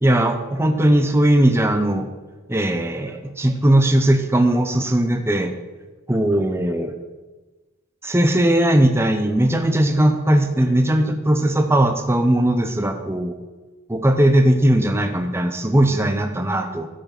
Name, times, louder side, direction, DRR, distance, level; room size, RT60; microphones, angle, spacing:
voice 1, 0.0-2.1 2.5-5.5 6.1-7.0 8.0-13.3 13.9-16.9, right 1 dB, 10° right, 6 dB, 0.7 m, -18 dB
12.5 x 5.9 x 6.0 m, 1.2 s
head